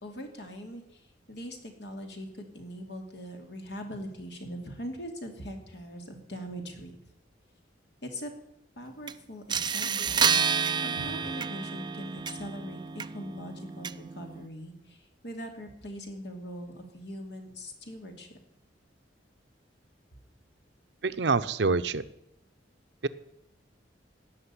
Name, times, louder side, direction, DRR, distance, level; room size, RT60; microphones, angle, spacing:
voice 1, 0.0-7.0 8.0-8.3 8.8-10.4 10.8-18.3, equal, 65° left, 3 dB, 2.7 m, -41 dB
sound 1, 9.1-9.2 9.5-14.5, right 6 dB, 25° right, 0.4 m, -30 dB
voice 2, 21.0-22.0 23.0-23.1, right 4 dB, 70° right, 14 dB, 0.7 m, -26 dB
17.0 x 6.3 x 9.8 m, 0.80 s
head